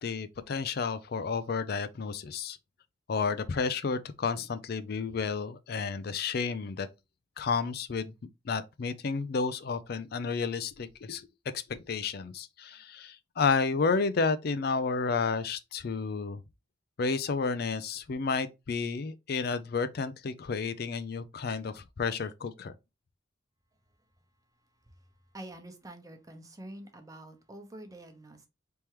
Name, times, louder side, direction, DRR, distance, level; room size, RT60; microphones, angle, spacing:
voice 1, 0.0-2.6 3.1-6.9 7.4-8.1 8.5-11.3 11.7-16.4 17.0-22.7, left 4 dB, 55° left, 0.4 m, -31 dB
voice 2, 25.3-28.5, right 1 dB, 20° right, 0.9 m, -47 dB
4.4 x 3.5 x 3.0 m
head